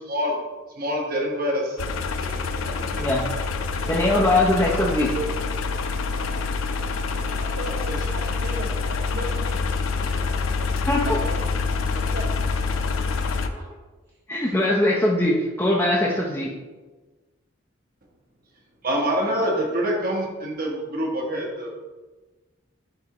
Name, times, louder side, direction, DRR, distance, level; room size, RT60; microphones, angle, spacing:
voice 1, 0.1-0.4 0.8-1.8 2.2-3.1 7.4-7.5 7.9-8.0 18.8-21.7, equal, 45° right, -1 dB, 1.2 m, -26 dB
sound 1, 1.8-13.5, left 4 dB, 85° left, 0.5 m, -26 dB
voice 2, 3.9-5.1 10.9-11.0 14.3-16.5, left 1 dB, 10° left, -5 dB, 0.6 m, -21 dB
voice 3, 8.1-9.6 10.0-10.3 11.0-11.4 11.9-13.1 13.5-13.7 14.4-14.5, right 1 dB, 90° right, -4 dB, 1.1 m, -36 dB
10.5 x 3.5 x 3.0 m, 1.2 s
head